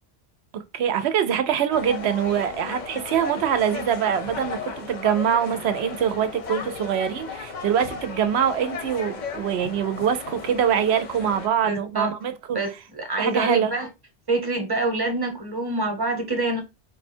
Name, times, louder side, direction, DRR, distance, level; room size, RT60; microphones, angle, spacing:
voice 1, 0.5-12.6 13.2-13.7, right 8 dB, 80° right, 0.9 m, -24 dB
sound 1, 1.7-11.5, left 5 dB, 50° left, 0.7 m, -35 dB
voice 2, 11.6-12.1 12.5-13.9 14.3-16.6, right 2 dB, 25° right, 0.9 m, -26 dB
3.9 x 2.2 x 4.3 m
omnidirectional pair, 1.1 m